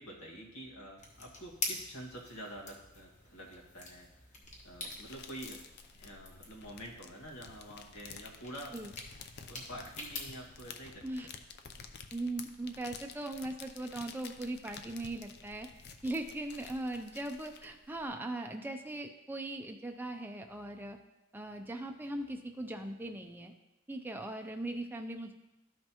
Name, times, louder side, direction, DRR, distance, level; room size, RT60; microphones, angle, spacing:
voice 1, 0.0-4.1 4.6-5.6 6.0-8.8 9.5-11.0, right 1 dB, 85° left, -3 dB, 1.8 m, -47 dB
sound 1, 1.0-10.7, left 3 dB, 35° left, 1.3 m, -46 dB
sound 2, 4.4-18.0, left 6 dB, 50° left, 0.6 m, -51 dB
voice 2, 12.1-15.7 16.0-21.0 21.3-23.5 23.9-25.3, right 1 dB, 10° right, 4 dB, 0.4 m, -39 dB
13.0 x 5.5 x 2.9 m, 1.0 s
head